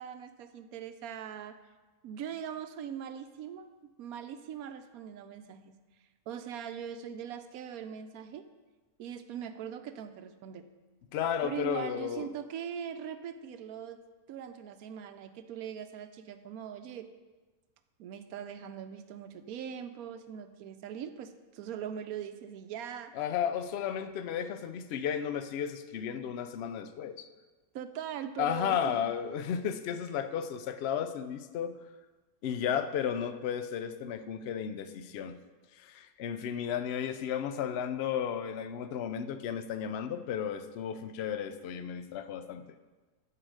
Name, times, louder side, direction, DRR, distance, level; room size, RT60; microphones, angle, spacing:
voice 1, 0.0-1.6 2.0-3.7 4.0-5.7 6.3-8.5 9.0-10.6 11.4-14.0 14.3-17.1 18.0-23.2 27.7-29.1, right 8 dB, 75° right, 9 dB, 1.0 m, -41 dB
voice 2, 11.1-12.3 23.1-27.3 28.4-31.8 32.4-35.4 35.7-42.6, left 8 dB, 75° left, 10 dB, 0.5 m, -33 dB
9.7 x 4.8 x 6.4 m, 1.3 s
omnidirectional pair, 1.6 m